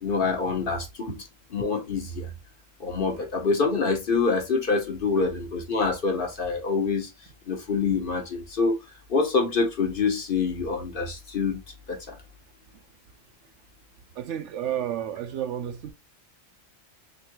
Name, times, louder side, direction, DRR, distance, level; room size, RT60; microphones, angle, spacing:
voice 1, 0.0-1.2 1.5-2.3 2.8-7.1 7.5-8.8 9.1-11.6 11.9-12.2, left 4 dB, 45° left, 1.1 m, -26 dB
voice 2, 14.1-15.9, right 10 dB, 70° right, 0.9 m, -31 dB
3.7 x 3.3 x 3.0 m
omnidirectional pair, 1.3 m